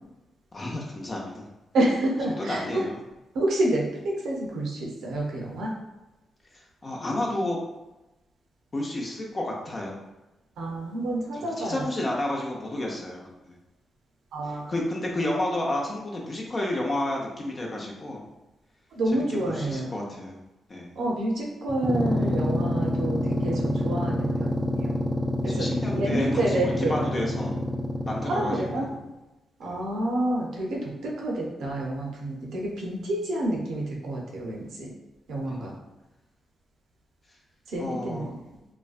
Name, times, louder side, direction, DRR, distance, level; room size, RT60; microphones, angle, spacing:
voice 1, 0.5-1.5 2.4-3.0 6.5-7.6 8.7-10.0 11.3-13.6 14.5-18.2 19.1-20.4 20.7-20.9 25.5-27.6 28.1-28.9 29.6-29.7 35.5-35.8 37.8-38.2, left 1 dB, 40° left, -1 dB, 0.7 m, -31 dB
voice 2, 1.7-2.8 3.3-5.7 10.6-11.8 14.3-14.7 18.9-19.9 21.0-25.0 25.4-25.7 25.9-26.9 28.2-28.9 29.6-34.9 35.3-35.7 37.7-38.4, right 1 dB, 75° right, -1 dB, 0.5 m, -28 dB
sound 1, 21.7-29.0, left 1 dB, 10° right, 0.4 m, -27 dB
2.4 x 2.2 x 2.4 m, 1.0 s
supercardioid pair, 45°, 0 cm